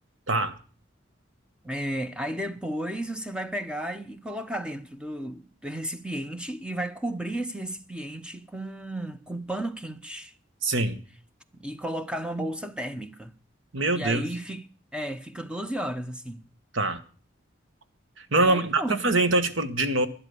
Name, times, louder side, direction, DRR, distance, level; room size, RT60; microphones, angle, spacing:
voice 1, 0.3-0.6 10.6-11.0 13.7-14.3 16.7-17.0 18.2-20.1, right 2 dB, 85° right, 1.3 m, -24 dB
voice 2, 1.6-10.3 11.5-13.3 13.9-14.7 14.9-16.5 18.3-19.0, right 1 dB, 5° right, 0.8 m, -33 dB
11.5 x 11.0 x 6.9 m
head